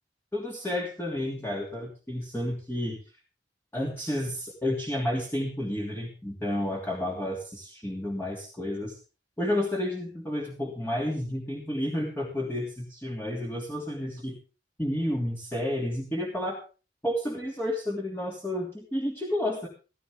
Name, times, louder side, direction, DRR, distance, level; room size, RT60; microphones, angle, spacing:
voice 1, 0.3-3.0 3.7-9.0 9.4-14.4 14.8-16.6 17.0-19.7, left 1 dB, 15° left, -2 dB, 3.1 m, -31 dB
15.5 x 15.0 x 3.8 m, 0.35 s
head